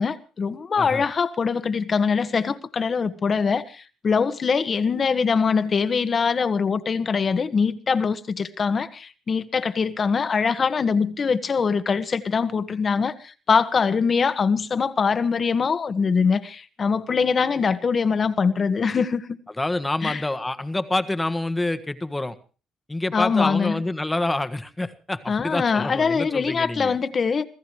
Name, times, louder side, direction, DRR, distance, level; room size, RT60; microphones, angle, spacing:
voice 1, 0.0-19.4 20.0-20.2 23.1-23.8 25.3-27.5, left 5 dB, 45° left, 1.5 m, -23 dB
voice 2, 19.6-22.3 22.9-27.0, left 2 dB, 15° left, 1.5 m, -27 dB
27.0 x 15.5 x 3.2 m
supercardioid pair, 60°, 0 cm